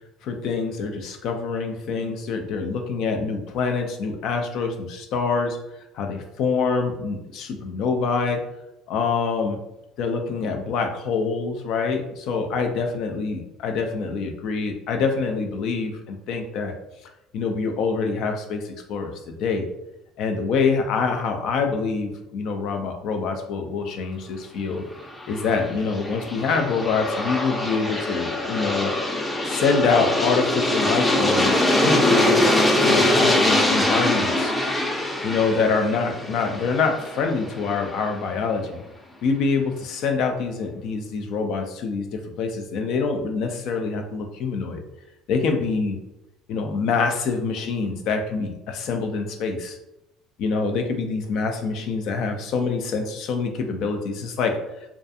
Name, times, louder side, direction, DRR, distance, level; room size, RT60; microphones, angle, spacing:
voice 1, 0.2-5.6 5.9-8.4 8.9-9.6 10.0-16.7 17.3-19.7 20.2-24.8 25.3-28.9 29.5-32.6 32.8-34.5 35.2-38.8 39.2-44.8 45.3-46.0 46.5-49.8 50.4-54.5, left 4 dB, 60° left, 4 dB, 0.4 m, -25 dB
Aircraft, 25.1-37.9, left 1 dB, 15° left, 0.6 m, -23 dB
2.3 x 2.3 x 2.6 m, 0.90 s
hypercardioid pair, 65°, 0 cm